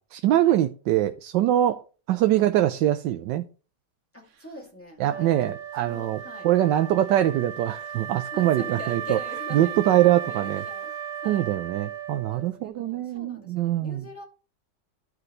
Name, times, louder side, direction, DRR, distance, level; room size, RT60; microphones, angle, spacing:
voice 1, 0.1-1.8 2.1-3.4 5.0-9.2 9.5-10.6 11.3-14.1, right 13 dB, 85° right, 9 dB, 1.2 m, -23 dB
voice 2, 4.1-5.5 5.8-6.5 8.3-10.9 11.2-11.5 12.3-14.2, left 1 dB, 5° left, -2 dB, 2.4 m, -42 dB
Wind instrument woodwind instrument, 5.1-12.6, right 8 dB, 55° right, 0.9 m, -36 dB
13.5 x 4.9 x 3.2 m, 0.36 s
omnidirectional pair, 1.9 m